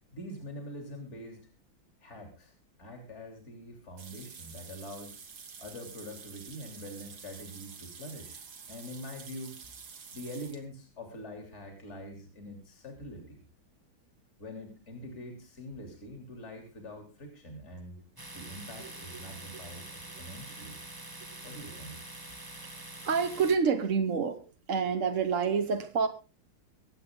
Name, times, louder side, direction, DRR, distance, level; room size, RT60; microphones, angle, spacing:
voice 1, 0.1-1.5 2.0-2.5 2.8-5.2 5.6-9.7 10.1-13.4 14.4-18.0 18.3-20.8 21.4-22.0, equal, 35° left, 3 dB, 3.5 m, -44 dB
sound 1, 4.0-10.6, right 6 dB, 75° right, 2.8 m, -48 dB
Domestic sounds home sounds, 18.2-23.6, right 2 dB, 10° right, 1.4 m, -45 dB
voice 2, 23.0-24.4 24.7-26.1, right 6 dB, 45° right, 6 dB, 1.3 m, -27 dB
24.5 x 8.7 x 3.7 m, 0.31 s
omnidirectional pair, 2.2 m